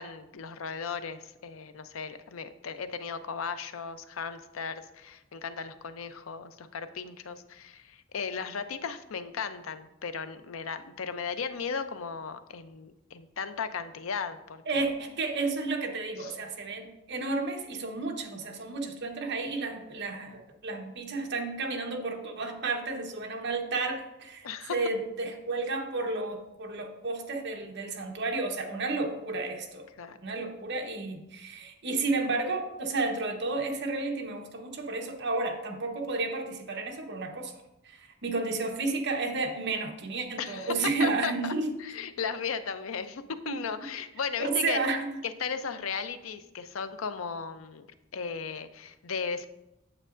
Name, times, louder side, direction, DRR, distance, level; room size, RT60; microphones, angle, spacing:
voice 1, 0.0-14.8 16.2-16.3 24.4-24.8 30.0-30.2 40.4-40.7 41.0-41.5 41.8-44.8 45.2-47.9 48.1-49.5, left 6 dB, 90° left, 10 dB, 0.5 m, -36 dB
voice 2, 14.7-29.9 30.2-37.5 37.8-41.7 43.5-43.6 44.4-45.2, right 3 dB, 60° right, 2 dB, 1.0 m, -32 dB
8.8 x 7.3 x 2.5 m, 0.91 s
head